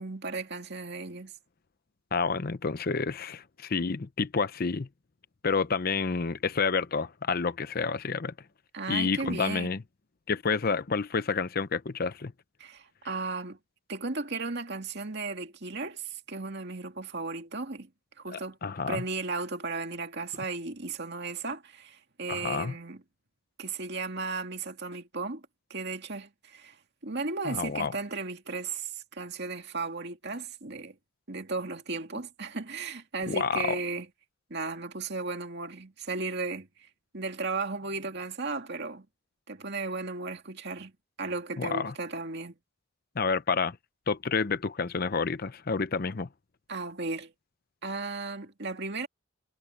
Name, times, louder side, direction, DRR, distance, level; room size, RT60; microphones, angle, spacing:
voice 1, 0.0-1.3 8.7-9.7 12.6-13.6 13.9-17.9 18.2-18.6 18.9-23.0 23.6-25.4 25.7-26.8 27.0-31.0 31.3-34.1 34.5-36.9 37.1-39.1 39.5-40.9 41.2-42.6 46.7-47.3 47.8-49.1, right 3 dB, 55° right, 2.3 m, -35 dB
voice 2, 2.1-4.9 5.4-8.3 8.9-9.8 10.3-12.3 18.3-19.0 22.3-22.7 27.4-27.9 33.3-33.8 41.6-41.9 43.2-43.8 44.1-46.3, left 5 dB, 45° left, 0.7 m, -29 dB
head